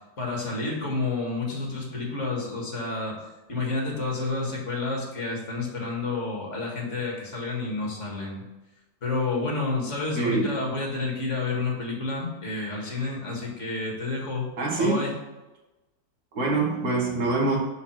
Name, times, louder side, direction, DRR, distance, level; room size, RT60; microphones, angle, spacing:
voice 1, 0.2-3.2 3.5-8.4 9.0-14.5 14.8-15.2, left 3 dB, 50° left, -2 dB, 2.2 m, -30 dB
voice 2, 10.2-10.5 14.6-15.0 16.3-17.6, right 3 dB, 75° right, -3 dB, 2.3 m, -24 dB
5.8 x 5.5 x 5.9 m, 1.1 s
omnidirectional pair, 1.6 m